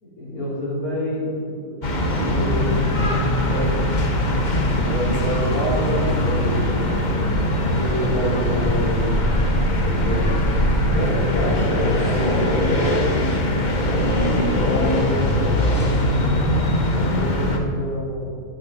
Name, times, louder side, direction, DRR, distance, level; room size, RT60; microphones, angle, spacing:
voice 1, 0.0-2.9 3.5-3.8 4.7-9.3 9.8-10.4 10.9-12.7 14.3-15.3 15.6-16.6 17.0-18.2, equal, 70° left, -7 dB, 3.6 m, -28 dB
sound 1, 1.8-17.6, left 1 dB, 35° left, 0.9 m, -21 dB
11.0 x 6.3 x 5.7 m, 2.2 s
omnidirectional pair, 1.6 m